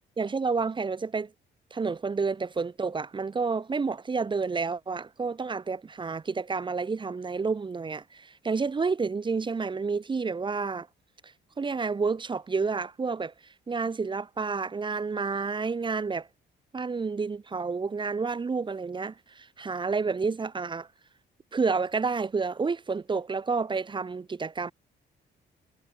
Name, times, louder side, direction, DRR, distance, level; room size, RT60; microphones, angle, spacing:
voice 1, 0.2-1.3 1.7-10.9 11.6-13.3 13.7-16.3 16.7-20.9 21.5-24.7, right 4 dB, 25° right, 0.6 m, -30 dB
cardioid pair, 90°, 20 cm